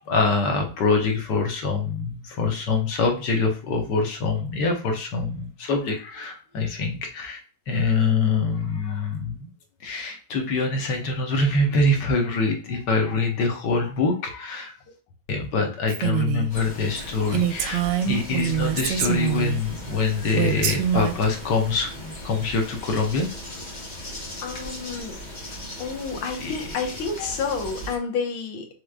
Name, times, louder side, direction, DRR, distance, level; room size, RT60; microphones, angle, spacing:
voice 1, 0.0-7.4 7.7-9.5 9.8-14.8 15.3-23.3 26.4-26.7 27.2-27.3, left 3 dB, 65° left, 3 dB, 1.6 m, -25 dB
Female speech woman speaking, 15.9-16.5 16.9-17.0 17.3-19.6 20.3-21.2, right 10 dB, 75° right, 1.1 m, -25 dB
sound 1, 16.5-28.0, left 1 dB, 30° left, 1.0 m, -38 dB
voice 2, 24.4-25.2 25.8-28.7, left 5 dB, 85° left, 3 dB, 1.8 m, -30 dB
6.1 x 3.2 x 2.3 m, 0.37 s
omnidirectional pair, 2.2 m